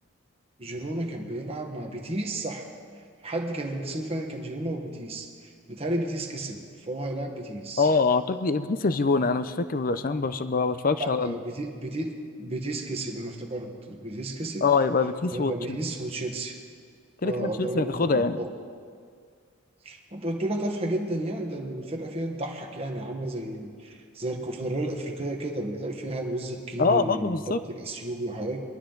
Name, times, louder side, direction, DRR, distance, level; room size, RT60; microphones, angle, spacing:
voice 1, 0.6-2.7 3.2-7.9 11.0-12.1 12.4-14.7 15.3-16.6 17.2-18.5 19.8-28.6, right 1 dB, 30° right, 2 dB, 1.3 m, -32 dB
voice 2, 7.8-11.4 14.6-15.8 17.2-18.4 26.8-27.6, left 4 dB, 40° left, 12 dB, 0.5 m, -24 dB
22.5 x 12.0 x 3.9 m, 2.1 s
head